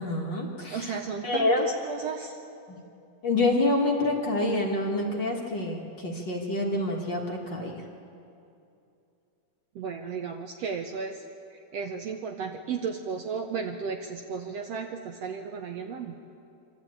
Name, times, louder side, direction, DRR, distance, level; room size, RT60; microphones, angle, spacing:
voice 1, 0.0-1.7 2.7-2.8 3.2-7.8, left 2 dB, 45° left, -1 dB, 1.8 m, -27 dB
voice 2, 0.7-2.4 9.7-11.2 11.5-16.1, right 6 dB, 70° right, 4 dB, 1.6 m, -34 dB
26.0 x 12.5 x 8.7 m, 2.6 s
omnidirectional pair, 3.6 m